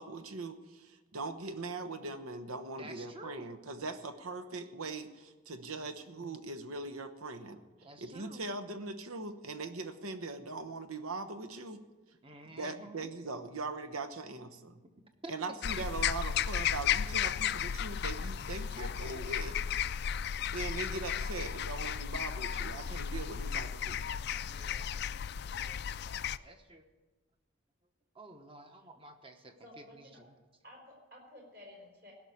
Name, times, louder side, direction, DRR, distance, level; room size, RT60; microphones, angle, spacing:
voice 1, 0.0-7.6 8.0-11.8 12.4-14.8 15.3-19.6 20.5-24.0, right 3 dB, 85° right, 10 dB, 1.0 m, -41 dB
voice 2, 2.8-3.5 7.8-8.4 12.2-13.1 15.2-15.3 24.5-24.9 25.5-25.8 26.4-26.9 28.1-30.4, right 2 dB, 25° right, 6 dB, 1.0 m, -51 dB
sound 1, 15.6-26.4, left 8 dB, 50° left, 0.3 m, -34 dB
voice 3, 29.6-30.2 30.6-32.1, left 1 dB, 50° right, -1 dB, 5.0 m, -53 dB
16.5 x 6.2 x 9.5 m, 1.3 s
head